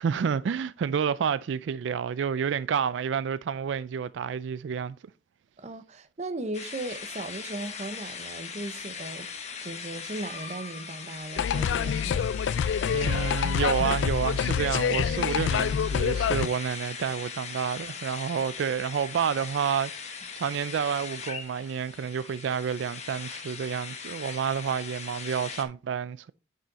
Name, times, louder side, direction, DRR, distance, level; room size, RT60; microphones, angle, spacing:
voice 1, 0.0-5.0 12.9-26.3, right 7 dB, 80° right, 0.3 m, -29 dB
voice 2, 5.6-9.3 9.6-12.3, right 2 dB, 40° right, 0.8 m, -37 dB
sound 1, 6.5-25.6, left 6 dB, 40° left, 1.3 m, -40 dB
sound 2, 11.4-16.5, left 7 dB, 85° left, 0.3 m, -26 dB
9.0 x 5.5 x 4.0 m
head